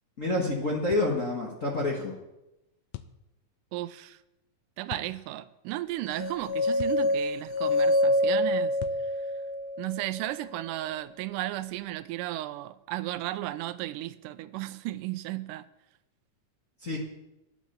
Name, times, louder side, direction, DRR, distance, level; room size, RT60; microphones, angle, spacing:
voice 1, 0.2-2.2 16.8-17.0, left 2 dB, 50° left, 0.9 m, -28 dB
sound 1, 0.9-1.1 2.9-3.2 4.9-5.1 6.8-7.1 8.8-9.1, left 14 dB, 85° left, 2.3 m, -41 dB
voice 2, 3.7-4.2 4.8-8.8 9.0-9.1 9.8-15.7, right 15 dB, 80° right, 2.1 m, -34 dB
sound 2, 6.2-10.3, left 1 dB, 70° left, 1.8 m, -26 dB
11.0 x 7.2 x 8.2 m
omnidirectional pair, 3.9 m